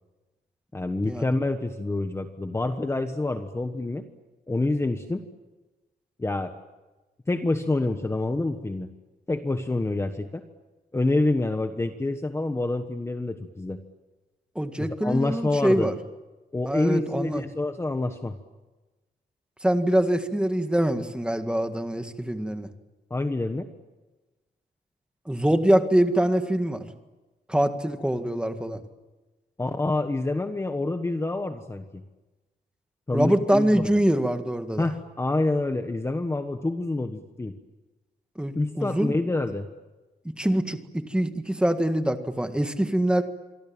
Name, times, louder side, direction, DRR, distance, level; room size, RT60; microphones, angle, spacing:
voice 1, 0.7-4.0 4.5-5.2 6.2-6.5 7.3-8.9 9.3-10.4 10.9-13.8 14.8-15.9 16.5-18.4 23.1-23.7 29.6-32.0 33.1-33.9 34.8-37.5 38.5-39.7, left 2 dB, 15° left, 7 dB, 1.3 m, -27 dB
voice 2, 14.6-16.0 16.7-17.4 19.6-22.7 25.3-26.8 27.5-28.8 33.1-34.9 38.4-39.1 40.4-43.2, right 1 dB, 5° right, 7 dB, 1.9 m, -24 dB
27.0 x 23.5 x 8.9 m, 1.1 s
wide cardioid pair, 150°, 16 cm